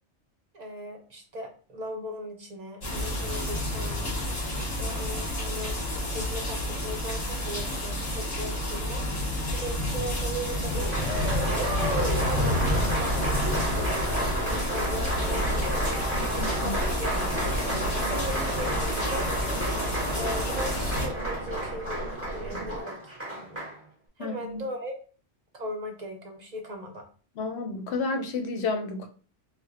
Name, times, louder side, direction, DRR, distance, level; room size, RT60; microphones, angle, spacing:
voice 1, 0.5-4.1 4.5-5.8 6.1-11.4 12.0-17.5 18.1-19.3 20.2-23.7 24.2-24.9 25.5-27.1, equal, 50° right, 0.5 m, -39 dB
sound 1, 2.8-21.1, left 1 dB, 40° left, 0.9 m, -30 dB
Applause, 10.5-23.8, right 1 dB, 15° right, 1.0 m, -31 dB
sound 2, 12.8-22.8, right 1 dB, 75° right, 0.9 m, -37 dB
voice 2, 16.3-16.7 24.2-24.6 27.4-29.1, left 3 dB, 70° left, 0.8 m, -31 dB
4.1 x 2.1 x 2.4 m
omnidirectional pair, 1.2 m